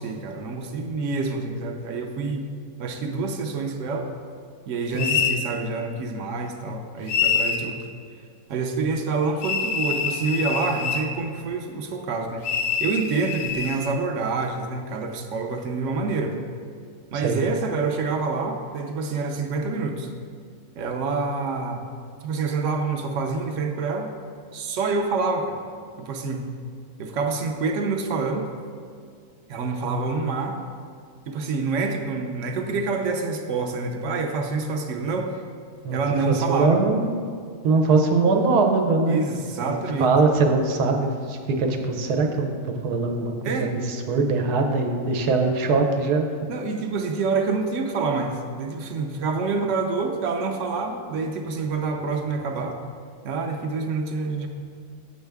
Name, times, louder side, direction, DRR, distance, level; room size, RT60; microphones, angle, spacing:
voice 1, 0.0-2.5 2.8-4.1 4.7-7.8 8.5-16.4 17.1-20.1 20.8-21.9 22.2-24.1 24.5-25.6 26.0-26.5 27.0-28.5 29.5-30.6 31.3-35.4 35.9-36.8 39.1-40.1 43.4-43.7 46.5-52.8 53.2-54.5, right 4 dB, 60° right, 4 dB, 0.9 m, -27 dB
voice 2, 4.9-5.3 17.1-17.4 35.8-36.0 36.3-37.2 37.6-39.3 39.6-39.7 40.0-42.5 42.8-46.3, right 3 dB, 80° right, 3 dB, 1.3 m, -22 dB
sound 1, 5.0-5.4 7.1-7.7 9.4-11.1 12.4-13.8, left 6 dB, 75° left, 1.0 m, -25 dB
7.1 x 6.5 x 3.4 m, 2.2 s
omnidirectional pair, 1.6 m